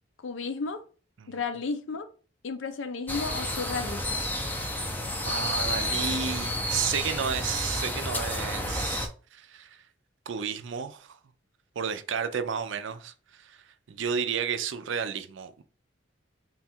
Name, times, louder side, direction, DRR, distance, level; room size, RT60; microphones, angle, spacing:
voice 1, 0.2-0.8 1.3-2.1 2.4-4.3, left 4 dB, 70° left, 0.5 m, -33 dB
sound 1, 3.1-9.1, left 1 dB, 10° left, 0.4 m, -30 dB
voice 2, 5.2-9.8 10.3-11.2 11.8-13.6 13.9-15.6, right 7 dB, 70° right, 0.4 m, -32 dB
3.8 x 2.3 x 4.3 m
head